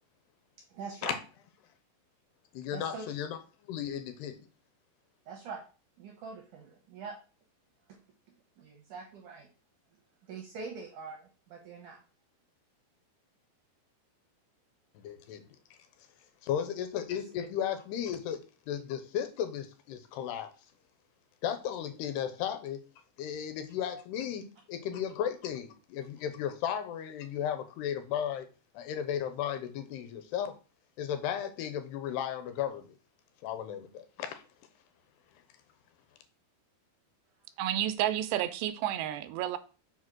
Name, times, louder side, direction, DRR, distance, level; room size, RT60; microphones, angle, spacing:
voice 1, 0.7-1.2 2.7-3.1 5.3-5.6 6.0-7.2 7.9-8.0 8.6-9.5 10.3-12.0, right 4 dB, 70° right, 2.0 m, -43 dB
voice 2, 2.5-3.4 3.7-4.4 15.0-15.6 16.4-20.5 21.4-22.8 23.2-28.5 28.7-30.5 31.0-32.9 33.4-34.4, left 9 dB, 75° left, 3.0 m, -35 dB
voice 3, 37.6-39.6, right 11 dB, 85° right, 2.7 m, -31 dB
6.4 x 5.1 x 6.2 m
omnidirectional pair, 5.0 m